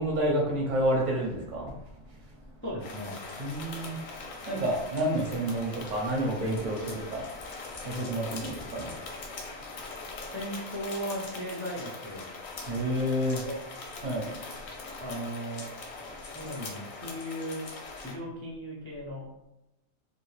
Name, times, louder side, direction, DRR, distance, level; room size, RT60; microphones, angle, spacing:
voice 1, 0.0-1.7 3.4-7.3 7.8-9.0 9.4-9.5 12.6-13.4 14.0-14.3, right 1 dB, 45° right, -2 dB, 0.8 m, -29 dB
voice 2, 2.6-3.2 10.3-12.3 13.4-13.7 15.0-15.7 16.3-17.7 18.0-19.3, equal, 20° left, -6 dB, 0.3 m, -37 dB
sound 1, 2.8-18.2, left 3 dB, 85° left, 1.0 m, -42 dB
2.8 x 2.5 x 3.2 m, 0.88 s
omnidirectional pair, 1.3 m